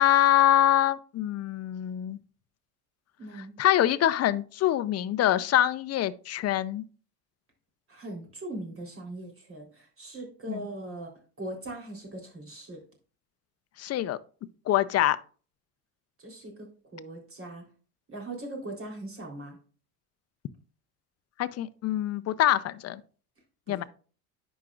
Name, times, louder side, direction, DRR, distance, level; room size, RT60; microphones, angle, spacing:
voice 1, 0.0-2.2 3.3-6.8 10.5-10.7 13.8-14.2 14.7-15.2 21.4-23.0 23.7-23.8, left 12 dB, 35° left, 0.5 m, -24 dB
voice 2, 3.2-3.6 7.9-11.1 11.4-12.8 16.2-16.7 16.9-17.6 18.1-19.6 23.7-23.9, right 1 dB, 30° right, 3.6 m, -40 dB
11.0 x 5.1 x 2.4 m
hypercardioid pair, 85°, 45 cm